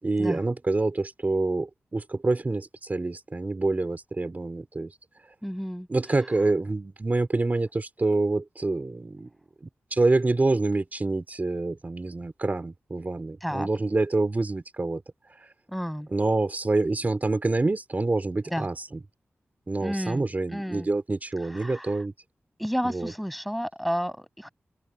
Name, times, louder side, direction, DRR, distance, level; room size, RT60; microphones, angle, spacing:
voice 1, 0.0-5.0 5.9-9.3 9.9-15.0 15.3-15.5 16.1-18.9 19.7-22.1 22.8-23.1, right 2 dB, 35° right, 2.9 m, -26 dB
voice 2, 5.4-5.9 13.4-13.7 15.7-16.1 18.5-18.7 19.8-20.2 20.5-20.9 21.5-22.0 22.6-24.5, equal, ahead, 7.2 m, -31 dB
open air
wide cardioid pair, 75°, 5 cm